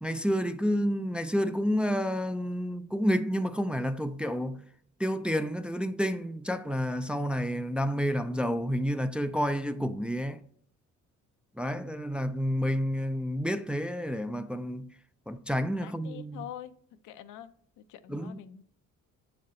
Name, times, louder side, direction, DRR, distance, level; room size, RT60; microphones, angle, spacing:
voice 1, 0.0-4.7 5.0-10.4 11.6-14.9 15.3-16.5 18.1-18.4, equal, 5° right, 0.3 m, -30 dB
voice 2, 15.8-16.7 17.0-18.6, left 11 dB, 85° left, 0.6 m, -45 dB
7.0 x 5.0 x 3.1 m
cardioid pair, 90°, 30 cm